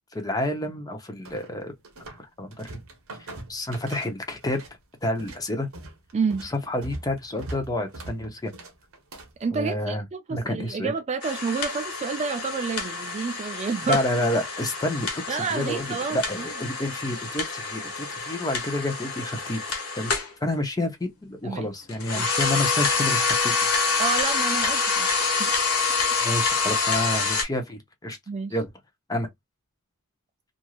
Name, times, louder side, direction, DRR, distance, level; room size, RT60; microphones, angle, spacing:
voice 1, 0.1-1.7 2.2-2.7 3.2-4.6 5.0-5.7 6.4-8.5 9.5-10.0 10.3-10.9 13.9-19.6 20.0-23.5 26.2-28.2 28.5-28.7 29.1-29.3, left 1 dB, 15° left, 0.7 m, -29 dB
sound 1, 1.2-2.2 2.5-4.7 5.0-9.4, right 2 dB, 65° right, 1.0 m, -41 dB
voice 2, 6.1-6.5 9.4-14.0 15.3-16.5 21.4-21.7 22.1-22.3 24.0-25.1 25.4-25.7 28.3-28.6, right 5 dB, 30° right, 0.3 m, -29 dB
sound 2, 11.2-20.3 21.9-27.4, left 4 dB, 85° left, 1.2 m, -27 dB
3.1 x 2.6 x 2.3 m
head